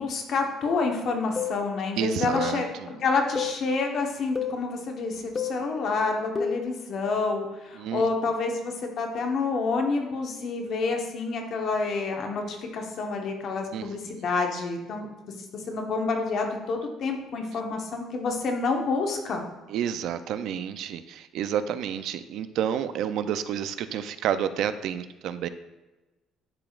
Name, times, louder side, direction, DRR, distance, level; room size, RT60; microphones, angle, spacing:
voice 1, 0.0-2.7 3.0-15.1 15.7-19.4, left 4 dB, 55° left, 2 dB, 1.1 m, -28 dB
sound 1, 1.4-1.6 2.4-2.6 3.4-3.6 4.4-4.6 5.4-5.6 6.4-6.7, left 6 dB, 25° left, 0.4 m, -29 dB
voice 2, 2.0-2.9 7.7-8.1 13.7-14.2 19.7-25.5, right 9 dB, 70° right, 12 dB, 0.4 m, -30 dB
10.5 x 4.9 x 2.4 m, 1.1 s
cardioid pair, 115°, 0 cm